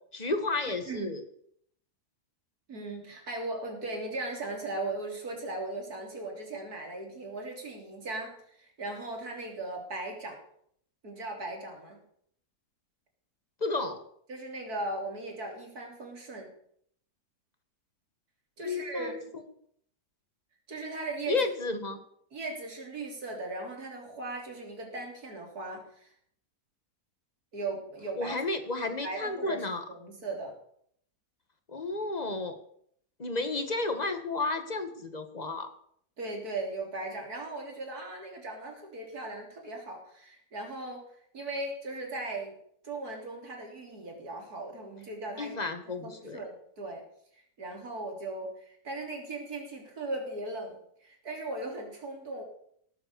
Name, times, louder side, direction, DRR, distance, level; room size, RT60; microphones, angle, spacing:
voice 1, 0.1-1.2 13.6-14.0 18.6-19.2 21.3-22.0 28.2-29.8 31.7-32.6 33.2-35.7 45.4-46.4, left 3 dB, 25° left, 8 dB, 1.4 m, -32 dB
voice 2, 0.9-1.2 2.7-10.4 11.0-12.0 14.3-16.5 18.6-19.3 20.7-21.5 22.3-26.1 27.5-28.4 28.8-30.5 36.2-41.0 41.3-42.6 42.8-45.6 46.0-47.0 47.3-52.4, right 2 dB, 70° right, 1 dB, 3.7 m, -38 dB
17.5 x 7.7 x 6.8 m, 0.68 s
omnidirectional pair, 1.7 m